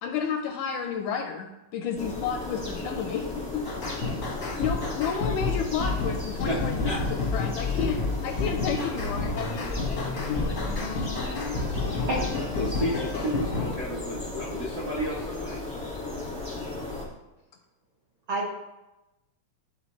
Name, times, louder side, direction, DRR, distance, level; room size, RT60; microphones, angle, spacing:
voice 1, 0.0-3.8 4.6-10.8 11.7-12.0, left 7 dB, 80° left, 5 dB, 1.8 m, -32 dB
sound 1, 1.9-17.0, left 2 dB, 5° left, 0.6 m, -36 dB
sound 2, 3.6-13.7, left 3 dB, 65° left, 0.8 m, -30 dB
voice 2, 4.3-4.6 6.4-6.6 6.8-7.0 12.6-15.6, equal, 55° right, -6 dB, 1.1 m, -32 dB
voice 3, 11.1-12.5 18.3-18.5, right 1 dB, 80° right, -3 dB, 1.1 m, -33 dB
12.5 x 4.3 x 3.1 m, 1.0 s
omnidirectional pair, 4.0 m